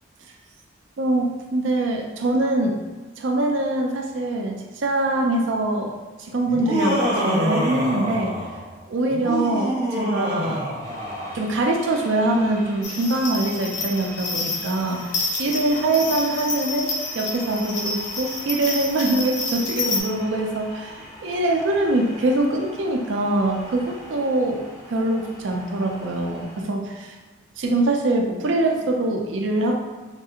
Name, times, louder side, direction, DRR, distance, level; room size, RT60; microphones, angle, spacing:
voice 1, 1.0-2.8 3.2-5.9 6.2-8.4 8.9-10.7 11.3-15.1 15.4-16.9 17.1-27.2 27.6-29.8, right 2 dB, 75° right, 2 dB, 0.4 m, -23 dB
Laughter, 6.5-8.6 9.1-11.4, equal, 45° right, 0.9 m, -25 dB
sound 1, 10.8-26.7, equal, 15° left, 0.5 m, -42 dB
sound 2, 12.8-20.0, left 3 dB, 65° left, 0.6 m, -29 dB
3.3 x 2.4 x 2.8 m, 1.3 s
head